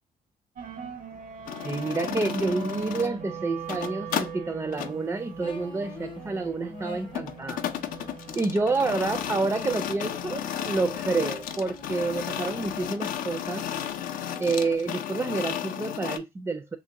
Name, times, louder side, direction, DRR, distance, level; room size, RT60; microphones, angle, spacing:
sound 1, 0.6-12.9, right 5 dB, 65° right, 0.6 m, -41 dB
sound 2, 1.5-3.2 3.6-4.3 4.7-4.9 7.1-16.2, left 10 dB, 75° left, 0.4 m, -33 dB
voice 1, 1.6-7.7 8.4-13.7 14.4-16.8, right 3 dB, 20° right, 0.3 m, -29 dB
sound 3, 5.4-7.7 9.7-14.8, left 3 dB, 35° left, 0.6 m, -46 dB
3.0 x 2.6 x 2.8 m
cardioid pair, 85°, 15 cm